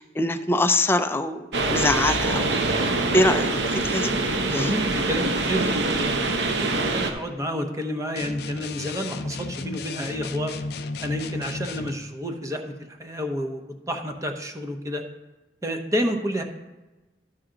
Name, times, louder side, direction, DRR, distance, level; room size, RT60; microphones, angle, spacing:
voice 1, 0.0-2.5 3.1-4.1 4.5-4.7, left 2 dB, 15° left, 8 dB, 0.4 m, -24 dB
sound 1, 1.5-7.1, right 2 dB, 75° right, 0.8 m, -24 dB
voice 2, 4.3-10.5 11.0-12.7 13.0-15.0 15.6-16.4, equal, 20° right, 5 dB, 0.8 m, -30 dB
sound 2, 8.2-12.0, left 3 dB, 65° left, 0.5 m, -33 dB
12.5 x 5.9 x 3.8 m, 1.1 s
head